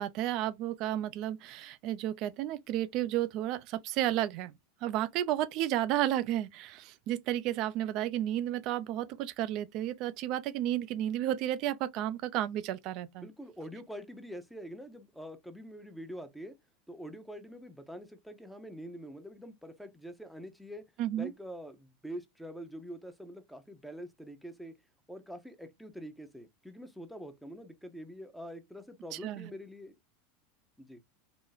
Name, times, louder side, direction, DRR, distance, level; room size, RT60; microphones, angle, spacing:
voice 1, 0.0-4.5 4.8-13.3 21.0-21.3 29.1-29.5, right 12 dB, 50° right, 0.4 m, -32 dB
voice 2, 13.2-16.6 16.9-20.8 21.2-24.8 25.1-30.0 30.8-31.0, equal, ahead, 0.7 m, -45 dB
4.0 x 2.0 x 3.9 m
supercardioid pair, 125°, 0 cm